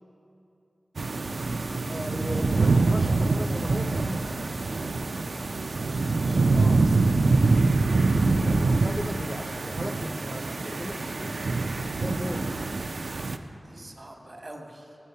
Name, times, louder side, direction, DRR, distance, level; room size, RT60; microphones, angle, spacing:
sound 1, 1.0-13.4, right 3 dB, 65° right, 0.3 m, -25 dB
voice 1, 1.9-4.5 8.3-11.5 12.0-12.7, equal, 5° left, 5 dB, 0.4 m, -37 dB
voice 2, 5.8-7.3 13.5-15.0, right 1 dB, 45° right, 2 dB, 1.0 m, -44 dB
8.2 x 6.4 x 5.5 m, 2.8 s
wide cardioid pair, 55°, 0 cm